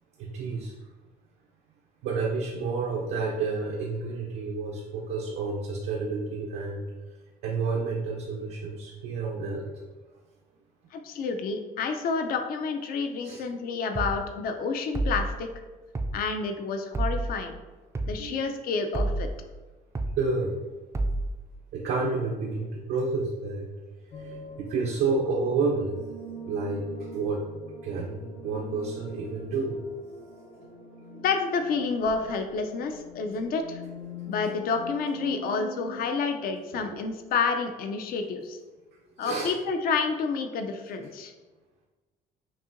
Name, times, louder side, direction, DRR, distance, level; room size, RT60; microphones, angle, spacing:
voice 1, 0.2-0.7 2.0-6.8 7.4-9.6 13.2-13.4 18.2-18.4 20.2-20.5 21.7-23.7 24.1-26.0 26.4-27.4 27.8-29.8 39.2-39.5, right 4 dB, 80° right, -2 dB, 0.6 m, -30 dB
voice 2, 10.9-15.5 16.1-17.5 18.0-19.3 31.1-33.8 34.3-38.6 39.2-41.3, left 5 dB, 60° left, 6 dB, 0.5 m, -29 dB
sound 1, 13.9-14.2 14.9-15.3 15.9-16.2 16.9-17.3 17.9-18.2 18.9-19.3 19.9-20.2 20.9-21.3, right 2 dB, 15° right, 0.3 m, -28 dB
sound 2, 24.1-36.3, left 1 dB, 85° left, 1.1 m, -43 dB
5.4 x 2.7 x 2.6 m, 1.2 s
cardioid pair, 110°, 17 cm